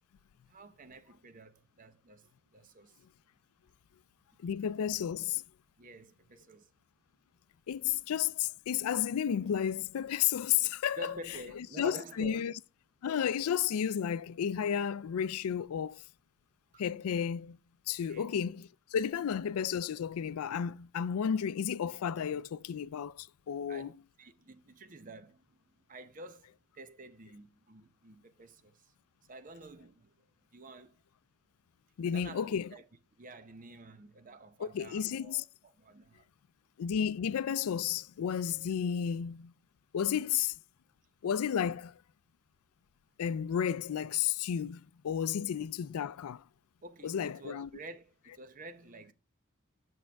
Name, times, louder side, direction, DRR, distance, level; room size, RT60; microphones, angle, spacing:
voice 1, 0.5-3.0 5.8-6.7 11.0-12.5 16.7-16.8 18.1-18.3 23.7-25.6 25.9-28.9 29.3-30.3 30.5-31.0 32.1-32.9 33.2-36.2 45.4-45.5 46.8-49.1, right 1 dB, 40° right, 0.7 m, -49 dB
voice 2, 4.4-5.4 7.7-11.1 11.6-12.5 13.0-16.0 16.8-17.6 17.9-23.9 32.0-32.7 34.6-35.4 36.8-39.5 39.9-40.5 41.2-41.9 43.2-46.4 47.0-47.7, left 8 dB, 85° left, 0.4 m, -32 dB
8.6 x 6.3 x 3.4 m
head